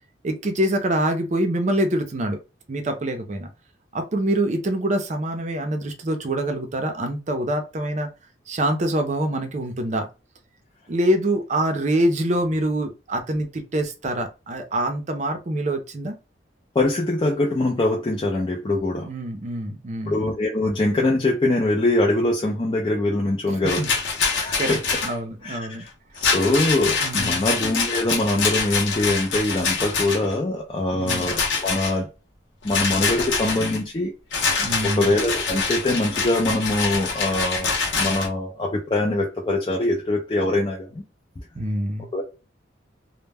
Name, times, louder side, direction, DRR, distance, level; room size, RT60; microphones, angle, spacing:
voice 1, 0.2-2.4 2.7-3.5 3.9-8.1 8.5-10.1 10.9-16.2 19.0-20.2 23.8-23.9 24.6-25.8 27.0-27.5 30.9-31.3 34.6-35.1 41.5-42.1, right 1 dB, 40° right, 0.5 m, -25 dB
voice 2, 16.7-19.1 20.1-23.8 24.3-24.8 25.4-25.9 26.2-32.1 32.6-34.1 34.8-41.0 42.1-42.2, left 2 dB, 25° left, 0.4 m, -23 dB
Rattle, 23.6-25.1 26.2-30.3 31.1-31.9 32.7-33.8 34.3-38.3, left 5 dB, 80° left, 0.7 m, -25 dB
2.1 x 2.1 x 3.3 m
head